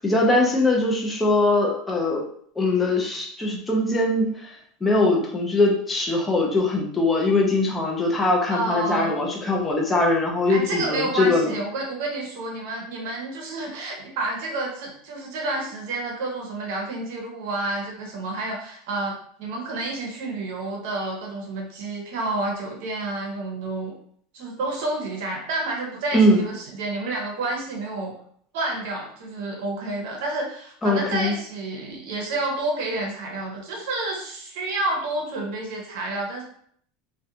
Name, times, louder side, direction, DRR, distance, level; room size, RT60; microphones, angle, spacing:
voice 1, 0.0-2.3 2.6-4.5 4.8-11.5 26.1-26.4 30.8-31.3, left 2 dB, 10° left, -2 dB, 0.4 m, -21 dB
voice 2, 8.5-9.2 10.5-23.9 24.3-28.1 28.5-36.4, right 2 dB, 60° right, 0 dB, 0.8 m, -29 dB
2.5 x 2.1 x 2.7 m, 0.63 s
supercardioid pair, 170°, 0 cm